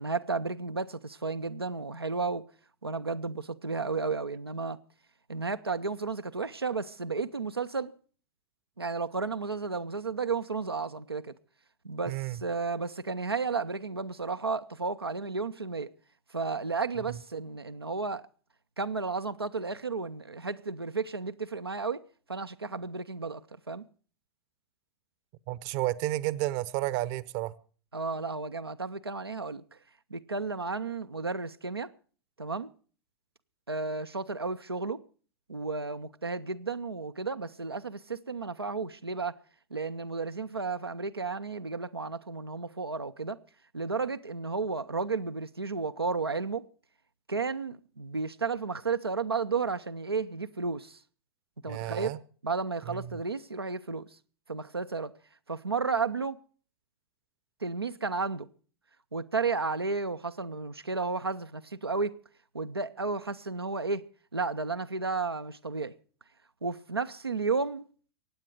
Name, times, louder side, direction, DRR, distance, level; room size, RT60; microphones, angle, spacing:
voice 1, 0.0-2.5 2.8-4.8 5.3-7.9 8.8-11.3 11.8-15.9 16.3-18.2 18.8-22.0 22.3-23.4 23.7-23.8 27.9-29.6 30.1-31.9 32.4-32.7 33.7-35.0 35.5-39.4 39.7-43.4 43.7-46.6 47.3-51.0 51.6-52.1 52.4-54.0 54.5-55.1 55.5-56.4 57.6-58.5 59.1-62.2 62.5-64.0 64.3-65.9 66.6-67.8, right 4 dB, 85° right, 0.6 m, -33 dB
voice 2, 12.1-12.4 17.1-17.2 25.5-27.5 51.7-52.2 52.9-53.2, right 16 dB, 40° right, 0.7 m, -32 dB
24.0 x 9.0 x 4.7 m
figure-of-eight pair, 95°, 13 cm